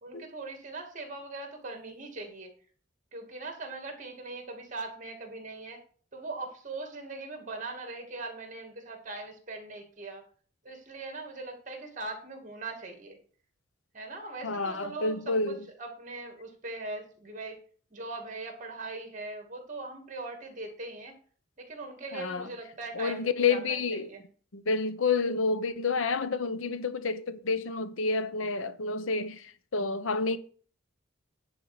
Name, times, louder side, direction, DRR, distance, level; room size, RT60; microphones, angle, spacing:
voice 1, 0.0-2.5 3.1-5.8 6.1-10.2 10.6-13.2 13.9-17.6 17.9-21.1 21.6-24.2, right 3 dB, 40° right, 2.5 m, -40 dB
voice 2, 14.4-15.7 22.1-22.5 22.9-24.1 24.5-30.4, left 4 dB, 85° left, 0.8 m, -29 dB
10.5 x 4.5 x 6.8 m
head